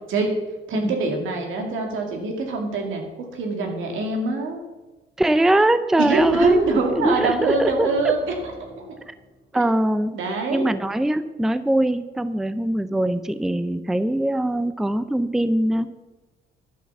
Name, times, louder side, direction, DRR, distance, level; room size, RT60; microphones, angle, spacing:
voice 1, 0.7-4.6 6.0-8.2 8.8-9.0 10.1-10.7, right 3 dB, 80° right, 3 dB, 2.2 m, -24 dB
voice 2, 5.2-6.6 7.0-8.1 9.5-10.2 10.5-15.9, right 1 dB, ahead, 13 dB, 0.5 m, -22 dB
sound 1, 6.1-9.6, equal, 20° right, 2.7 m, -41 dB
11.0 x 5.7 x 7.1 m, 1.1 s
cardioid pair, 90°, 20 cm